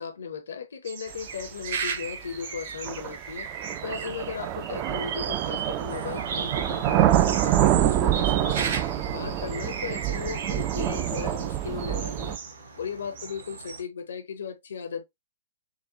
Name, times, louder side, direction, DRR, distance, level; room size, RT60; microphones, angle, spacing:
voice 1, 0.0-3.5 3.8-8.7 9.1-12.4 12.8-15.0, left 6 dB, 60° left, 0.7 m, -36 dB
sound 1, 0.9-12.6 13.2-13.8, right 6 dB, 50° right, 0.9 m, -36 dB
sound 2, 1.8-1.9 2.8-12.4, right 12 dB, 30° right, 0.4 m, -26 dB
sound 3, 5.9-13.8, right 3 dB, 75° right, 1.3 m, -44 dB
3.9 x 2.2 x 2.7 m
figure-of-eight pair, 115°, 0 cm